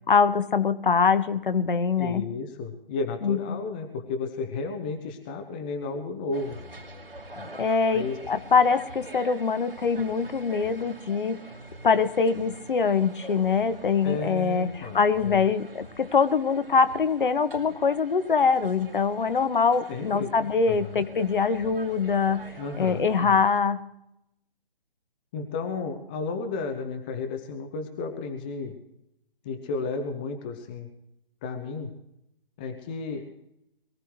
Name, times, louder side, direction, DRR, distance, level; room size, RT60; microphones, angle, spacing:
voice 1, 0.1-2.2 3.2-3.6 7.6-11.4 11.8-22.4 22.8-23.8, left 5 dB, 60° left, 12 dB, 1.1 m, -23 dB
voice 2, 2.0-6.6 7.4-7.5 7.9-8.2 14.0-15.5 19.9-21.0 22.6-23.4 25.3-28.8 29.4-30.9 31.4-31.9 32.6-33.3, left 4 dB, 10° left, 5 dB, 0.5 m, -33 dB
sound 1, 6.3-23.6, right 1 dB, 75° right, 2.8 m, -45 dB
22.0 x 15.5 x 3.2 m, 0.81 s
figure-of-eight pair, 140°, 29 cm